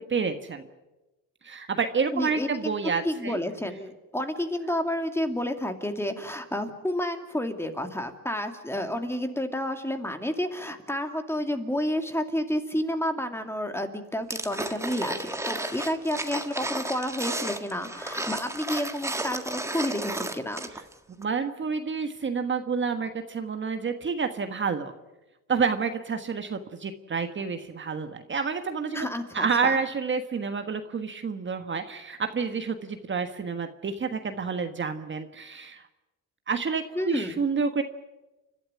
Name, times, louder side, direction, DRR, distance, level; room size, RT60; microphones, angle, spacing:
voice 1, 0.1-0.6 1.4-3.4 21.2-24.9 25.5-29.1 29.3-35.8 36.5-37.8, right 5 dB, 35° right, 7 dB, 1.5 m, -29 dB
voice 2, 2.1-2.7 3.0-20.7 28.9-29.8 37.0-37.4, left 1 dB, 5° left, 6 dB, 2.4 m, -30 dB
sound 1, 14.3-20.9 21.2-21.3, right 2 dB, 10° right, 1.6 m, -33 dB
30.0 x 12.0 x 9.7 m, 1.0 s
cardioid pair, 105°, 34 cm